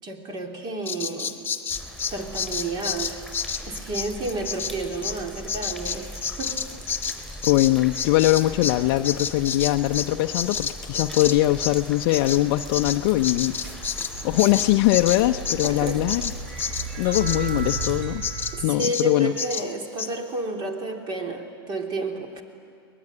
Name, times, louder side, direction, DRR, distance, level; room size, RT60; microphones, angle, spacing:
voice 1, 0.0-1.4 2.1-3.3 3.6-6.1 6.4-6.6 15.6-16.0 18.5-22.4, right 2 dB, 35° right, 3 dB, 3.5 m, -31 dB
Bird vocalization bird call bird song, 0.9-8.8 9.0-17.9 18.2-18.5 18.8-19.1 19.4-19.7 20.0-20.1, left 6 dB, 15° left, 1.5 m, -30 dB
sound 1, 1.7-18.0, equal, ahead, 6.4 m, -40 dB
voice 2, 7.4-16.2 17.0-18.2 18.6-19.3, left 16 dB, 55° left, 5 dB, 0.7 m, -22 dB
sound 2, 13.0-18.7, right 4 dB, 50° right, 3.1 m, -35 dB
23.5 x 20.0 x 9.8 m, 2.4 s
hypercardioid pair, 105°, 13 cm